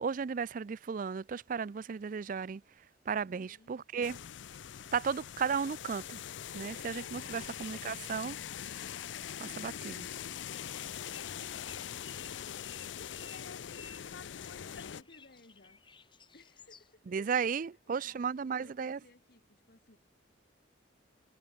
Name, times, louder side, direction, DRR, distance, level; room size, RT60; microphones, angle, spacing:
voice 1, 0.0-2.6 3.1-4.2 4.9-6.2 6.5-8.4 9.4-10.1 17.1-19.0, right 6 dB, 45° right, 0.4 m, -34 dB
voice 2, 3.2-3.8 12.8-15.9 16.3-20.0, left 2 dB, 55° left, 1.8 m, -61 dB
sound 1, 4.0-15.0, left 9 dB, 75° left, 0.5 m, -42 dB
sound 2, 11.5-16.9, left 5 dB, 25° left, 2.0 m, -57 dB
head